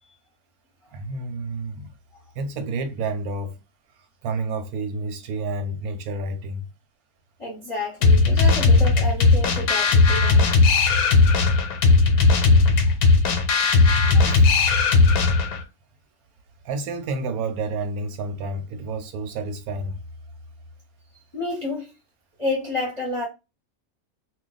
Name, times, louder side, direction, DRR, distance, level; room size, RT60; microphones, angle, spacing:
voice 1, 0.9-1.9 2.4-3.6 4.2-6.7 14.2-14.5 16.6-20.0, right 3 dB, 90° right, 1.1 m, -29 dB
voice 2, 7.4-10.5 14.1-14.3 21.3-21.9 22.4-23.3, left 2 dB, 30° left, 0.7 m, -30 dB
sound 1, 8.0-15.6, left 4 dB, 90° left, 1.1 m, -17 dB
2.4 x 2.2 x 3.9 m
omnidirectional pair, 1.5 m